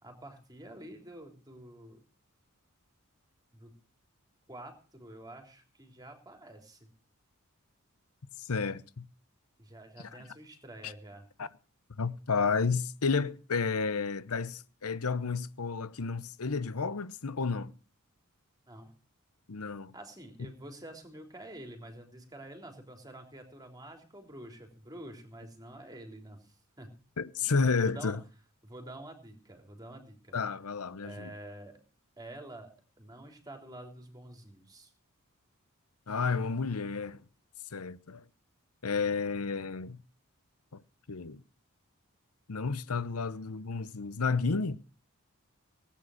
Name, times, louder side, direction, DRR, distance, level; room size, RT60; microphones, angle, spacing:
voice 1, 0.0-2.0 3.5-3.7 4.5-6.9 9.6-11.3 18.7-19.0 19.9-26.9 27.4-28.2 28.6-30.4 31.0-31.8 32.2-32.7 33.0-34.9, right 1 dB, 20° right, 3.5 m, -48 dB
voice 2, 8.4-9.1 10.8-10.9 11.4-11.5 12.0-17.7 19.5-19.9 27.2-28.2 30.3-31.3 36.1-37.2 37.7-38.2 38.8-40.0 41.1-41.4 42.5-44.8, left 4 dB, 80° left, 0.9 m, -31 dB
18.5 x 9.2 x 6.3 m
head